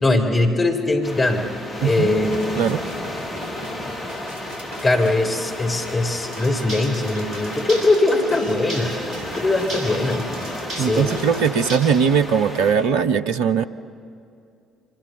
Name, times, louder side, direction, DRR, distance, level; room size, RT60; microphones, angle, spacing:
voice 1, 0.0-1.5 1.8-2.3 4.8-10.3 10.8-11.1, left 2 dB, 25° left, 2 dB, 3.4 m, -21 dB
sound 1, 1.0-12.7, left 1 dB, 45° left, 6.0 m, -33 dB
voice 2, 1.8-2.1 2.6-2.8 10.8-13.7, right 7 dB, 65° right, 10 dB, 0.7 m, -20 dB
sound 2, 2.1-12.0 12.5-12.6, right 2 dB, 80° left, 3.7 m, -41 dB
sound 3, 6.2-11.8, right 1 dB, 45° right, 7.5 m, -34 dB
26.5 x 26.0 x 6.9 m, 2.5 s
figure-of-eight pair, 45°, 0 cm